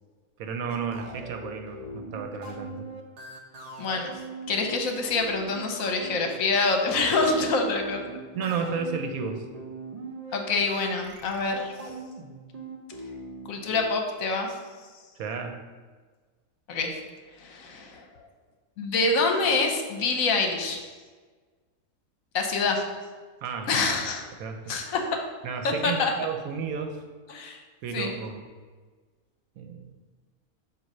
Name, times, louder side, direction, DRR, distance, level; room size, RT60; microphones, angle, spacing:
voice 1, 0.4-2.9 8.3-9.4 15.2-15.6 23.4-23.7 24.3-24.8 25.4-27.0 27.8-28.4 29.6-29.9, right 5 dB, 75° right, 5 dB, 1.1 m, -32 dB
sound 1, 0.7-13.8, right 2 dB, 45° right, 0.5 m, -41 dB
voice 2, 3.8-4.2 4.5-8.0 10.3-11.7 13.5-14.5 16.7-16.9 17.4-18.0 18.8-20.8 22.3-22.8 23.7-24.2 24.7-25.2 25.6-26.1 27.3-27.6 27.9-28.1, left 3 dB, 70° left, 3 dB, 1.2 m, -26 dB
7.6 x 2.6 x 5.4 m, 1.4 s
omnidirectional pair, 1.5 m